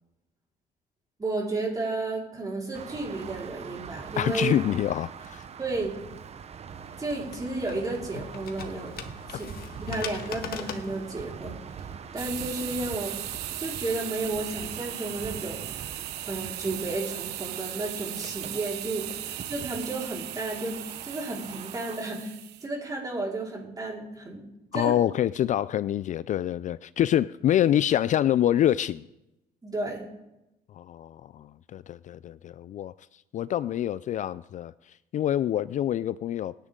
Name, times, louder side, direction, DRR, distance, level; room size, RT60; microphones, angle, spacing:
voice 1, 1.2-4.5 5.6-5.9 7.0-8.9 9.3-9.5 9.8-11.6 12.1-13.1 13.6-15.9 16.3-19.1 19.5-22.3 22.6-24.4 24.7-24.9 29.6-30.1, right 2 dB, 20° right, 4.6 m, -32 dB
sound 1, 2.7-22.0, right 7 dB, 40° right, 0.9 m, -43 dB
voice 2, 4.2-5.4 24.7-29.0 30.7-32.9 33.3-36.5, left 11 dB, 50° left, 0.4 m, -26 dB
sound 2, 6.7-12.1, left 7 dB, 65° left, 1.7 m, -41 dB
sound 3, 12.2-22.7, right 14 dB, 80° right, 0.8 m, -37 dB
25.5 x 10.0 x 3.8 m
cardioid pair, 110°, 17 cm